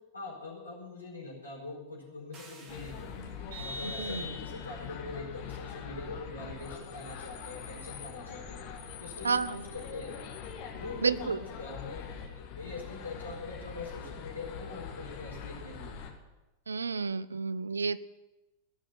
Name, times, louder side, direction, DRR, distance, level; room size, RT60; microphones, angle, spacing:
voice 1, 0.1-3.1 3.5-8.6 9.0-10.3 10.8-15.9, left 3 dB, 80° left, -4 dB, 4.6 m, -43 dB
sound 1, 2.3-3.6, right 3 dB, 30° right, 2.1 m, -55 dB
sound 2, 2.7-16.1, left 6 dB, 45° left, 2.0 m, -43 dB
Vehicle horn car horn honking, 3.5-4.9, left 1 dB, 55° right, 5.5 m, -41 dB
voice 2, 3.8-4.2 9.2-9.6 11.0-11.4 16.7-18.0, right 5 dB, 75° right, 19 dB, 0.4 m, -30 dB
16.0 x 6.3 x 9.7 m, 1.1 s
figure-of-eight pair, 90°, 0 cm